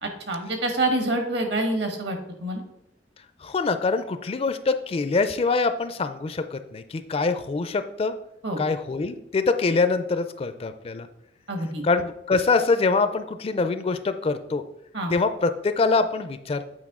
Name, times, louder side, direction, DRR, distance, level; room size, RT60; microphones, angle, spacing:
voice 1, 0.0-2.6 8.4-8.6 11.5-11.8 14.9-15.1, right 1 dB, 65° right, 4 dB, 1.3 m, -27 dB
voice 2, 3.4-8.1 8.6-11.1 11.8-14.6 15.1-16.6, left 4 dB, 35° left, 10 dB, 0.4 m, -24 dB
8.1 x 4.5 x 3.6 m, 0.81 s
head